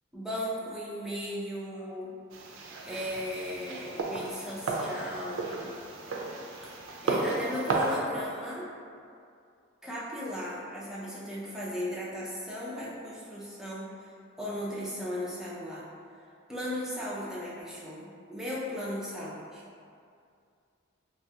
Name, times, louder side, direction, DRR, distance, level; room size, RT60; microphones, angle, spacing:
voice 1, 0.1-2.1 2.8-5.7 7.0-8.7 9.8-14.1 14.4-15.8 16.5-19.6, equal, ahead, -8 dB, 0.4 m, -36 dB
sound 1, 2.3-8.0, right 3 dB, 70° right, 0.4 m, -33 dB
3.0 x 2.3 x 2.7 m, 2.4 s
head